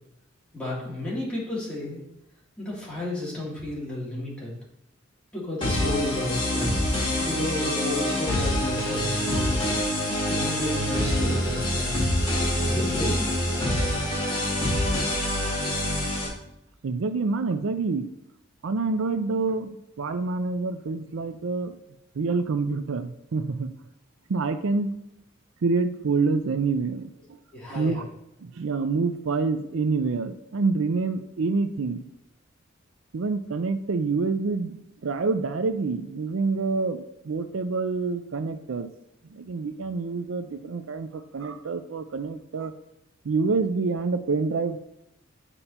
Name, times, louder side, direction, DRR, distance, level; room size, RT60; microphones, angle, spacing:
voice 1, 0.5-2.0 2.6-4.5 5.3-6.7 7.2-12.0 12.6-13.3 27.5-28.0, left 2 dB, 5° left, -8 dB, 2.7 m, -33 dB
sound 1, 5.6-16.3, left 1 dB, 25° left, 2.2 m, -25 dB
voice 2, 16.8-18.1 18.6-21.8 22.1-23.7 24.3-24.9 25.6-27.4 27.7-28.0 28.4-32.1 33.1-38.9 39.3-42.7 43.2-44.8, right 4 dB, 80° right, 10 dB, 0.5 m, -27 dB
9.8 x 5.4 x 2.9 m, 0.84 s
head